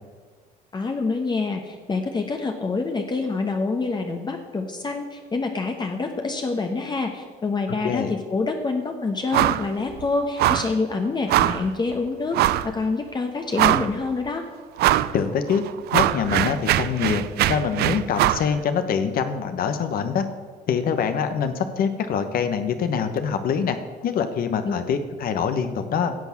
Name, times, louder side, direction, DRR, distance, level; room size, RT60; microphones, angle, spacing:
voice 1, 0.7-14.4 24.6-24.8, left 3 dB, 25° left, 4 dB, 1.1 m, -26 dB
sound 1, 9.3-9.7 9.9-10.1 10.4-10.7 11.3-11.7 12.3-12.7 13.2-13.3 13.5-14.1 14.8-15.1 15.5-18.5, right 14 dB, 70° right, 0.5 m, -21 dB
voice 2, 15.1-15.6 15.9-20.3 20.7-26.2, left 7 dB, 60° left, 9 dB, 1.1 m, -24 dB
10.5 x 7.2 x 7.1 m, 1.6 s
cardioid pair, 110°, 17 cm